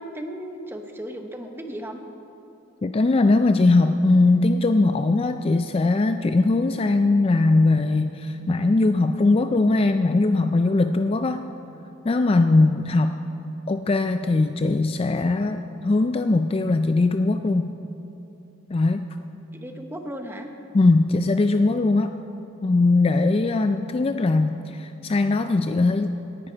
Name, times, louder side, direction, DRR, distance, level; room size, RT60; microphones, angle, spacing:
voice 1, 0.0-2.0 19.5-20.5, equal, 10° right, 5 dB, 0.9 m, -35 dB
voice 2, 2.8-11.4 12.1-13.1 13.7-17.7 18.7-19.1 20.7-22.1 22.6-26.1, left 2 dB, 30° left, 8 dB, 0.3 m, -20 dB
18.0 x 10.5 x 4.5 m, 2.9 s
head